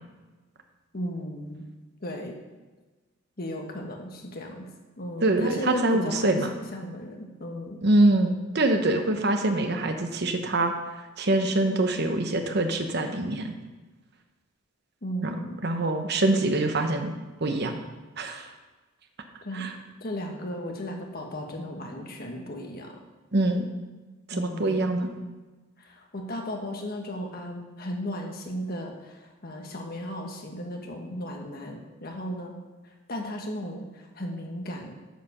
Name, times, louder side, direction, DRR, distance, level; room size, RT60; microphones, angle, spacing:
voice 1, 0.9-1.6 2.0-2.4 3.4-4.7 5.0-7.8 15.0-15.6 19.4-19.7 20.0-23.0 24.3-24.8 25.8-32.6 33.1-34.9, equal, 50° left, 2 dB, 1.4 m, -35 dB
voice 2, 5.2-6.5 7.8-10.7 11.2-13.5 15.2-15.3 15.6-17.1 17.4-17.8 18.2-18.5 19.5-19.7 23.3-23.7 24.3-25.1, right 2 dB, 60° right, 5 dB, 1.0 m, -24 dB
9.1 x 5.1 x 6.6 m, 1.2 s
head